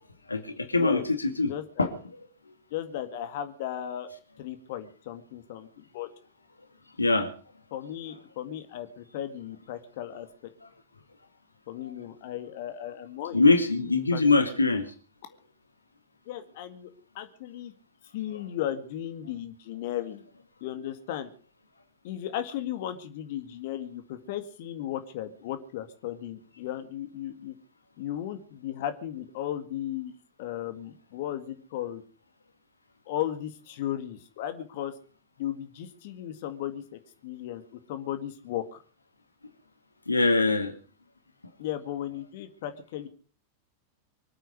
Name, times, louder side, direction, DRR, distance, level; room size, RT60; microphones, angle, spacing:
voice 1, 0.3-1.5 1.8-1.9 2.5-2.6 7.0-7.3 11.8-11.9 13.3-14.9 40.1-40.7, left 3 dB, 80° left, 8 dB, 2.3 m, -23 dB
voice 2, 1.5-1.9 2.7-4.1 4.4-6.1 7.7-10.5 11.7-13.4 14.1-14.2 16.3-16.9 17.2-17.7 18.1-20.2 20.6-21.3 22.0-27.5 28.0-32.0 33.1-34.9 35.4-38.8 41.6-43.1, left 11 dB, 50° left, 9 dB, 1.9 m, -35 dB
25.0 x 9.1 x 6.3 m, 0.40 s
figure-of-eight pair, 90°, 0 cm